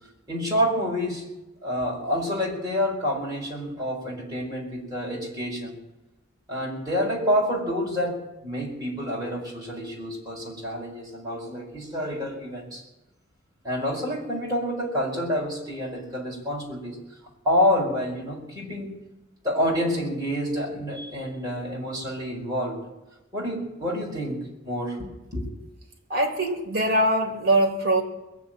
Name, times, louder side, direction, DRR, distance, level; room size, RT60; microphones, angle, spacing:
voice 1, 0.3-1.3 1.6-5.8 6.5-12.8 13.6-17.0 17.4-19.0 19.4-22.9 23.3-25.5, equal, 20° right, -4 dB, 5.0 m, -28 dB
voice 2, 26.1-28.0, right 1 dB, 50° right, 3 dB, 3.2 m, -22 dB
21.5 x 7.4 x 9.1 m, 1.0 s
head